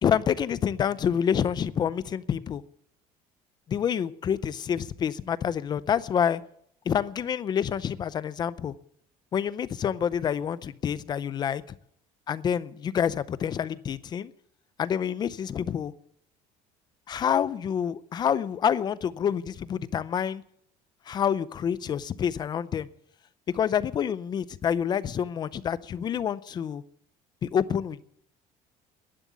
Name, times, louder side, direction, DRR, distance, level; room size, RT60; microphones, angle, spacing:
voice 1, 0.0-2.6 3.7-6.4 6.9-8.7 9.3-11.6 12.3-14.3 14.8-15.9 17.1-20.4 21.1-22.9 23.5-26.8 27.4-28.0, left 8 dB, 30° left, 0.5 m, -27 dB
11.5 x 11.0 x 8.2 m
cardioid pair, 165°, 14 cm